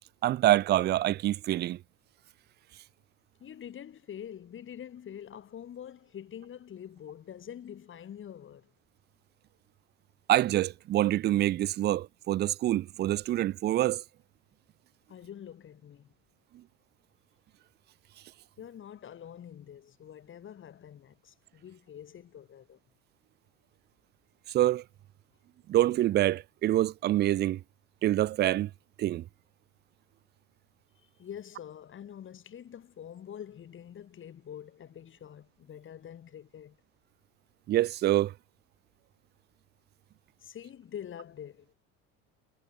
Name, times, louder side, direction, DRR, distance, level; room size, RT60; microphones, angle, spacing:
voice 1, 0.2-1.8 10.3-14.0 24.5-24.8 25.7-27.6 28.0-28.7 29.0-29.2 37.7-38.3, right 14 dB, 35° right, 0.4 m, -26 dB
voice 2, 3.4-8.7 15.1-16.1 18.6-22.8 31.0-36.8 40.4-41.7, left 9 dB, 40° left, 5.9 m, -45 dB
supercardioid pair, 115°, 31 cm